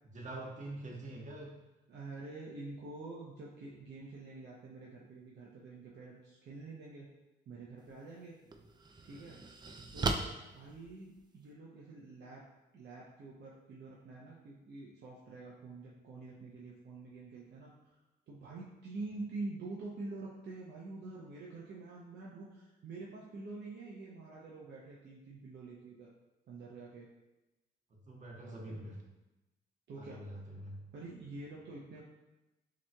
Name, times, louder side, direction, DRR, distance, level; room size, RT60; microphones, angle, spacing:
voice 1, 0.0-1.5 9.6-9.9 28.1-29.0 30.0-30.8, right 1 dB, 40° right, -2 dB, 1.3 m, -45 dB
voice 2, 1.9-7.1 7.5-8.4 9.0-9.4 9.9-10.2 10.5-12.4 12.7-18.0 18.3-26.1 26.5-27.1 28.4-28.9 29.9-30.2 30.9-32.0, right 3 dB, 60° right, -4 dB, 0.8 m, -47 dB
sound 1, 7.8-7.9 8.5-11.5, right 3 dB, 20° right, 0.4 m, -38 dB
7.2 x 3.0 x 2.3 m, 1.0 s
cardioid pair, 90°, 20 cm